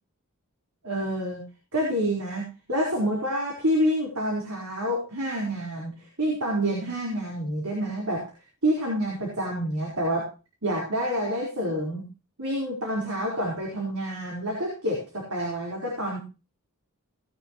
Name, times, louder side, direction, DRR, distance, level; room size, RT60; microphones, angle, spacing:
voice 1, 0.8-1.5 1.7-8.2 8.6-10.3 10.6-12.1 12.4-16.2, equal, 85° right, -2 dB, 4.5 m, -28 dB
18.0 x 10.5 x 3.1 m, 0.30 s
head